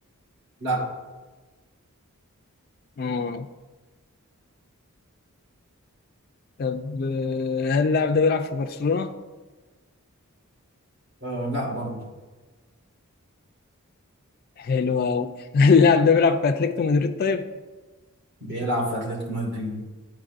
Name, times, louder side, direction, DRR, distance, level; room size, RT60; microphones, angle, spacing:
voice 1, 3.0-3.5 6.6-9.1 14.6-17.5, left 5 dB, 45° left, 5 dB, 0.3 m, -21 dB
voice 2, 11.2-12.0 18.4-19.8, right 1 dB, 50° right, -2 dB, 1.5 m, -28 dB
12.0 x 4.6 x 2.5 m, 1.3 s
head